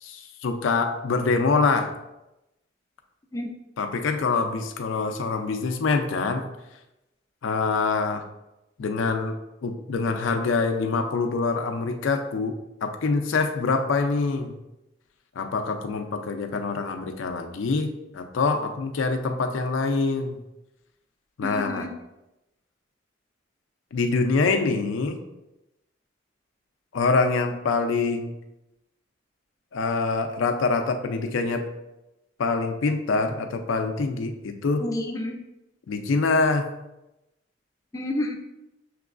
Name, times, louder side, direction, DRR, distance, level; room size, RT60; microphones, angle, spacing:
voice 1, 0.0-1.9 3.8-6.5 7.4-8.2 8.8-9.3 9.6-14.5 15.4-20.4 21.4-21.9 23.9-25.2 26.9-28.3 29.7-31.6 32.4-34.9 35.9-36.7, left 4 dB, 80° left, 5 dB, 0.4 m, -25 dB
voice 2, 21.4-21.9 34.8-35.4 37.9-38.3, left 1 dB, 15° left, 2 dB, 0.4 m, -30 dB
5.9 x 3.0 x 2.4 m, 0.94 s
head